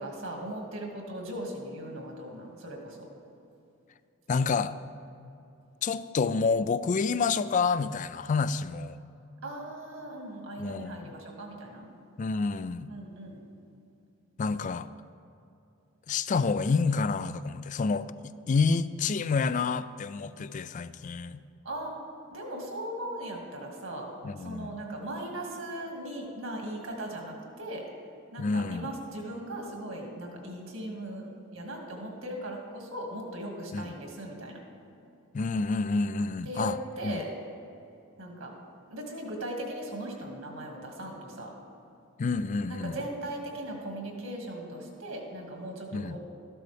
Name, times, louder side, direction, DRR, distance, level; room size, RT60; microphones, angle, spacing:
voice 1, 0.0-3.0 9.4-11.9 12.9-13.4 21.6-21.9 22.3-24.1 24.4-27.9 28.3-34.6 36.4-37.3 38.2-38.5 38.9-41.5 42.7-46.2, right 1 dB, 70° right, 0 dB, 2.1 m, -38 dB
voice 2, 4.3-4.7 5.8-9.0 10.6-11.1 12.2-12.9 14.4-14.9 16.1-18.1 18.5-21.4 24.2-24.7 28.4-28.9 33.7-33.9 35.3-36.8 37.0-37.2 42.2-43.0 45.9-46.2, left 4 dB, 35° left, 14 dB, 0.3 m, -28 dB
13.5 x 12.0 x 3.4 m, 2.7 s
head